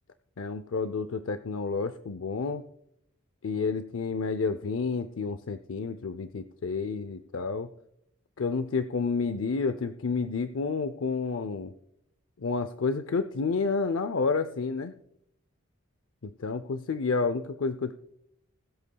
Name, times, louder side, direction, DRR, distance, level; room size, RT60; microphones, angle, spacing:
voice 1, 0.4-2.6 3.4-7.7 8.4-11.7 12.4-14.9 16.4-17.9, left 4 dB, 75° left, 10 dB, 0.5 m, -30 dB
21.5 x 8.3 x 2.3 m, 0.74 s
head